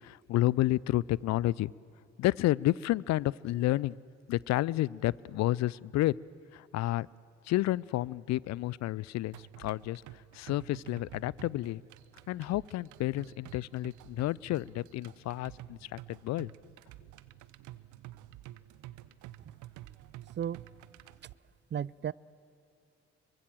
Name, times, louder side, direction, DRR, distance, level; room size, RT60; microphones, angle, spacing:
voice 1, 0.0-1.7 2.2-4.0 4.3-6.2 6.5-7.1 7.4-10.0 10.3-11.8 12.3-16.5, left 16 dB, 55° left, 24 dB, 0.5 m, -30 dB
sound 1, 9.3-21.3, right 14 dB, 65° right, 0.9 m, -50 dB
voice 2, 21.7-22.1, right 9 dB, 35° right, 24 dB, 0.5 m, -33 dB
25.5 x 23.5 x 7.5 m, 2.7 s
hypercardioid pair, 45°, 32 cm